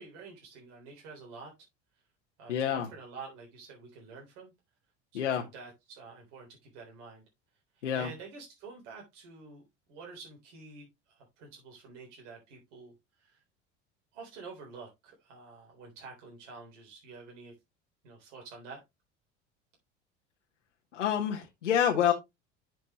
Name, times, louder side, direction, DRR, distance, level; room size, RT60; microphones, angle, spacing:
voice 1, 0.0-1.5 2.4-4.5 5.1-7.2 7.8-9.6 9.9-12.9 13.2-13.4 14.1-17.5 18.0-18.8, right 4 dB, 65° right, 3.7 m, -48 dB
voice 2, 2.5-2.9 5.1-5.5 7.8-8.1 20.9-22.1, left 9 dB, 85° left, 1.2 m, -27 dB
10.5 x 6.0 x 3.0 m
hypercardioid pair, 70°, 35 cm